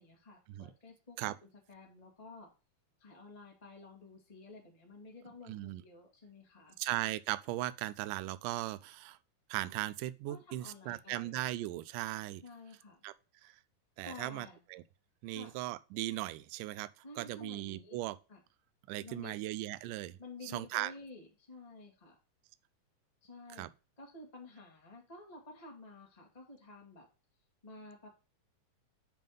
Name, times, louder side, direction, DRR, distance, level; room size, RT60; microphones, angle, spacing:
voice 1, 0.0-2.5 3.0-6.8 10.3-11.4 12.4-13.0 14.0-14.6 15.3-15.6 17.0-18.0 18.3-18.4 19.0-19.4 20.2-22.2 23.2-27.1 27.6-28.1, left 2 dB, 20° left, 0.9 m, -52 dB
voice 2, 5.5-5.8 6.8-9.2 9.5-12.4 13.0-13.1 13.4-13.6 14.0-14.8 15.2-18.2 18.9-20.9 23.5-23.7, right 16 dB, 85° right, 2.1 m, -38 dB
7.7 x 3.6 x 5.2 m
omnidirectional pair, 3.8 m